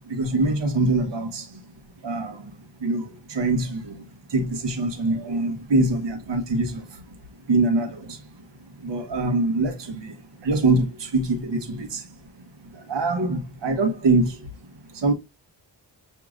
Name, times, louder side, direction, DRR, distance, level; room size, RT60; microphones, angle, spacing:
voice 1, 0.1-1.6 2.0-2.5 2.8-4.0 4.3-7.0 7.5-8.2 8.8-10.1 10.4-12.0 12.7-14.5 14.9-15.1, right 2 dB, 70° right, 1.1 m, -24 dB
6.2 x 2.8 x 2.4 m
cardioid pair, 65°, 44 cm